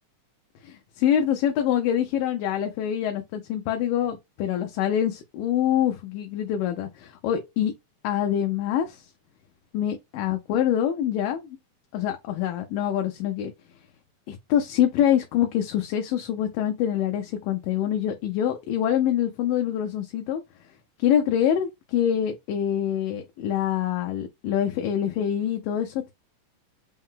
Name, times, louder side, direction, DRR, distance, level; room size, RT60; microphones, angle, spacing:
voice 1, 0.6-7.7 8.0-9.0 9.7-11.6 11.9-13.5 14.3-20.4 21.0-26.1, left 10 dB, 80° left, 2.2 m, -25 dB
5.4 x 2.0 x 3.7 m
omnidirectional pair, 4.0 m